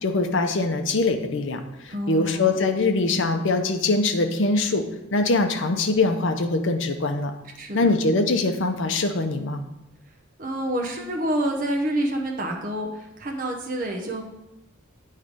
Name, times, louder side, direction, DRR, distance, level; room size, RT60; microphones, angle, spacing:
voice 1, 0.0-4.8 5.1-7.3 7.7-9.6, left 3 dB, 55° left, 6 dB, 0.6 m, -23 dB
voice 2, 1.9-2.5 7.6-7.9 10.4-14.2, right 1 dB, 40° right, 0 dB, 0.8 m, -28 dB
8.5 x 3.2 x 5.1 m, 0.89 s
head